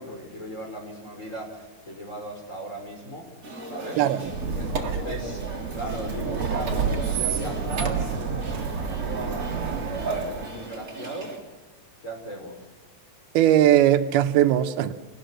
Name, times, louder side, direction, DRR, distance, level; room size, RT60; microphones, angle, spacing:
voice 1, 0.0-3.3 3.6-4.0 4.6-11.3 12.0-12.5, right 1 dB, 20° left, 5.8 m, -37 dB
sound 1, 3.4-11.4, right 2 dB, 20° right, 4.0 m, -36 dB
voice 2, 4.0-4.3 13.3-14.9, right 12 dB, 85° right, 2.8 m, -19 dB
Squeak, 4.2-10.7, right 6 dB, 50° right, 3.0 m, -29 dB
28.5 x 19.5 x 6.3 m
omnidirectional pair, 4.4 m